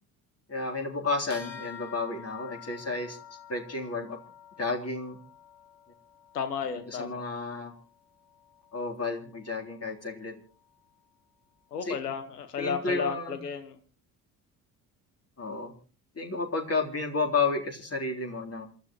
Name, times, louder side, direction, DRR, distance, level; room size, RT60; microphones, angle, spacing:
voice 1, 0.5-3.2 3.5-4.2 4.6-5.2 6.9-7.7 8.7-10.4 11.8-12.0 12.6-13.4 15.4-15.7 16.2-18.7, left 3 dB, 30° left, 2 dB, 3.8 m, -31 dB
sound 1, 1.3-11.1, left 8 dB, 70° left, 2.8 m, -50 dB
voice 2, 6.3-7.2 11.7-13.8, left 6 dB, 85° left, 10 dB, 1.2 m, -33 dB
27.5 x 14.0 x 3.1 m, 0.39 s
figure-of-eight pair, 50°, 46 cm